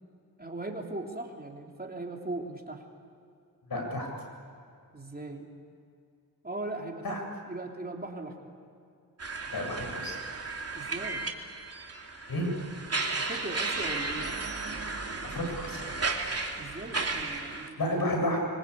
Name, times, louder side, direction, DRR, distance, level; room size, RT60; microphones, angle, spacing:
voice 1, 0.4-2.8 4.9-5.5 6.4-7.2 7.5-8.5 10.7-11.3 13.1-14.3 16.6-17.8, right 2 dB, 25° right, 1 dB, 3.3 m, -39 dB
voice 2, 3.7-4.1 7.0-7.2 9.5-10.2 12.3-12.5 15.2-15.9 17.8-18.4, left 1 dB, 65° left, 1 dB, 7.8 m, -31 dB
sound 1, 9.2-17.7, right 3 dB, 40° right, 2.8 m, -34 dB
26.0 x 24.0 x 8.4 m, 2.4 s
wide cardioid pair, 85°, 38 cm